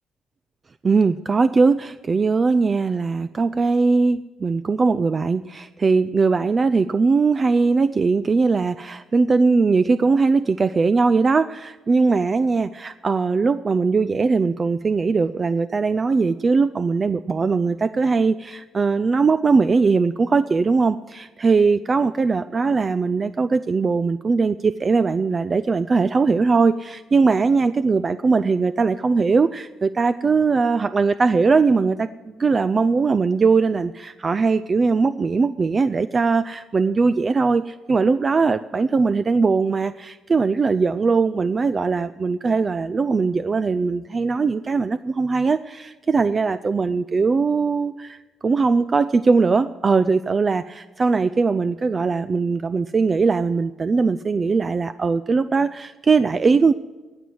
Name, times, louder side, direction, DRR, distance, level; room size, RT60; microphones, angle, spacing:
voice 1, 0.8-56.7, right 4 dB, 35° right, 13 dB, 0.4 m, -20 dB
18.5 x 6.3 x 9.8 m, 1.2 s
cardioid pair, 90°, 0 cm